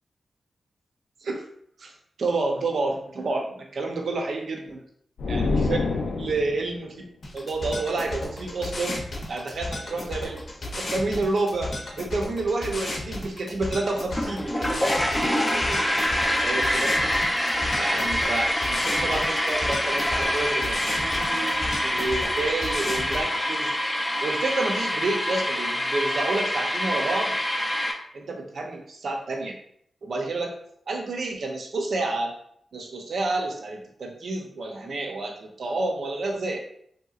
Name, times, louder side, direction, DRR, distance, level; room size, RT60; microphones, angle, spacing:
voice 1, 2.2-4.8 5.3-7.0 7.3-10.4 10.8-15.9 16.4-16.9 17.8-23.7 24.2-27.3 28.1-29.5 30.0-30.5 30.9-32.3 32.7-36.6, right 2 dB, 60° right, 1 dB, 0.6 m, -29 dB
sound 1, 5.2-6.8, left 3 dB, 80° left, 0.4 m, -26 dB
sound 2, 7.2-23.2, left 1 dB, 50° left, 0.7 m, -34 dB
sound 3, 14.1-27.9, left 1 dB, 10° left, 0.4 m, -26 dB
3.5 x 2.8 x 2.4 m, 0.68 s
wide cardioid pair, 160°, 0 cm